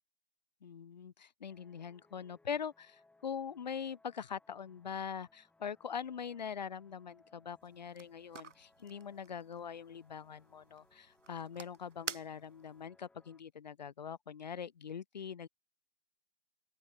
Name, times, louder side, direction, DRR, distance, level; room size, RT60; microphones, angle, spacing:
voice 1, 0.6-15.5, left 7 dB, 35° left, 0.4 m, -43 dB
sound 1, 1.5-13.4, left 2 dB, 5° left, 4.3 m, -69 dB
sound 2, 7.6-12.8, right 6 dB, 75° right, 0.9 m, -50 dB
open air
figure-of-eight pair, 130°, 37 cm